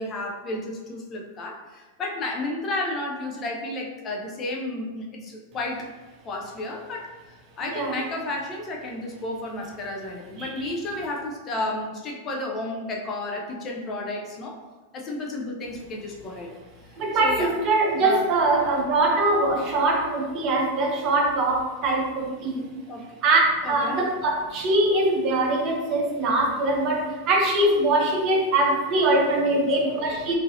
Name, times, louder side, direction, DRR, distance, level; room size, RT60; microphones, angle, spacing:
voice 1, 0.0-5.9 6.2-14.6 14.9-16.5 17.2-17.5 18.0-18.3 22.9-23.2 23.6-24.0 29.5-30.2, left 2 dB, 30° left, 0 dB, 0.5 m, -32 dB
voice 2, 10.4-10.7 17.0-22.7 23.2-30.4, right 2 dB, 35° right, 0 dB, 0.7 m, -22 dB
3.8 x 2.6 x 2.6 m, 1.2 s
figure-of-eight pair, 90°, 0 cm